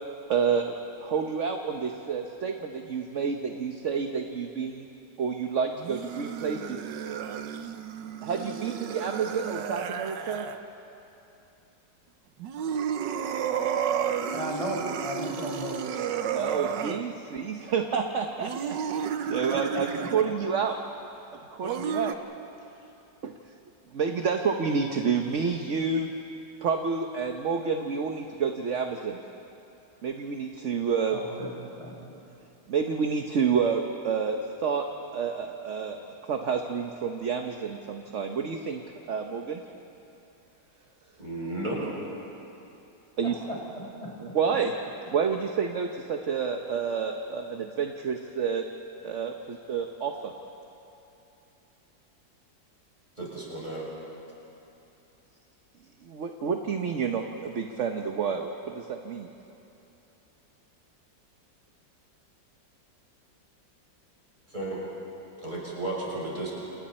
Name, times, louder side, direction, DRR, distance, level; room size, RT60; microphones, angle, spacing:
voice 1, 0.3-0.7 1.0-4.9 5.2-6.8 8.2-10.5 16.3-20.8 21.5-22.2 23.2-23.3 23.9-26.1 26.6-29.2 30.0-31.2 32.7-34.9 35.1-38.8 39.1-39.6 43.2-43.4 44.2-44.7 45.1-48.6 49.0-50.3 56.0-59.3, right 6 dB, 50° right, 4 dB, 1.1 m, -29 dB
sound 1, 5.8-10.6 12.4-17.0 18.4-20.3 21.6-22.2, right 8 dB, 80° right, 1.6 m, -32 dB
voice 2, 14.3-15.8 31.1-31.5 31.8-32.2 43.2-44.3, equal, 20° left, -4 dB, 5.1 m, -36 dB
voice 3, 41.2-41.8 53.2-53.9 64.5-64.8 65.4-66.5, right 2 dB, 25° right, -6 dB, 6.9 m, -33 dB
28.5 x 28.5 x 4.3 m, 2.9 s
omnidirectional pair, 1.9 m